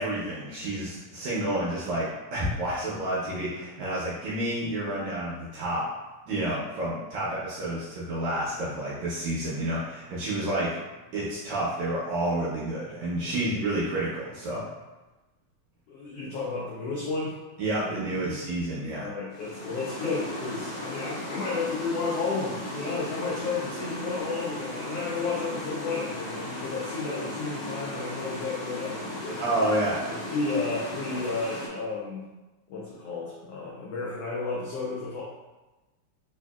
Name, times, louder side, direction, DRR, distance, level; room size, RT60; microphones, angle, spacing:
voice 1, 0.0-5.9 6.3-10.7 11.1-14.7 17.6-19.1 29.4-30.0, right 1 dB, 75° right, -7 dB, 2.0 m, -29 dB
voice 2, 15.9-17.4 17.8-18.4 18.9-29.4 30.1-32.3 32.7-35.2, left 4 dB, 85° left, -4 dB, 1.3 m, -32 dB
sound 1, 19.3-31.7, left 1 dB, 55° left, 1.1 m, -36 dB
4.7 x 2.6 x 2.3 m, 1.1 s
omnidirectional pair, 3.3 m